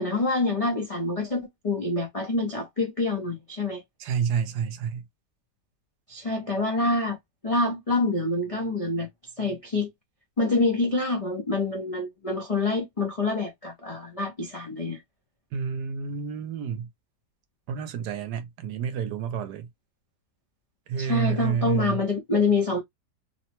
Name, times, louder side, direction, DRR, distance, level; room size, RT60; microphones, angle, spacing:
voice 1, 0.0-3.8 6.1-7.2 7.4-9.1 9.4-9.9 10.4-15.0 21.0-22.8, left 3 dB, 70° left, 0.3 m, -26 dB
voice 2, 4.0-5.1 15.5-16.9 17.7-19.7 20.9-22.0, right 7 dB, 75° right, 1.1 m, -29 dB
3.0 x 2.1 x 2.8 m
omnidirectional pair, 1.8 m